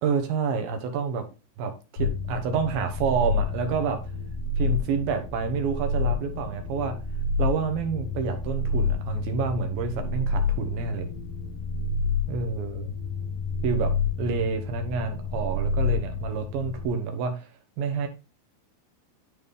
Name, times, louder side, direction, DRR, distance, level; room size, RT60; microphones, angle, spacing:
voice 1, 0.0-1.2 1.6-4.0 4.6-7.0 7.4-11.1 12.3-12.9 13.6-17.5 17.8-18.1, right 5 dB, 70° right, 2.4 m, -28 dB
sound 1, 2.0-16.9, left 4 dB, 75° left, 1.7 m, -29 dB
11.0 x 3.9 x 3.4 m
omnidirectional pair, 5.2 m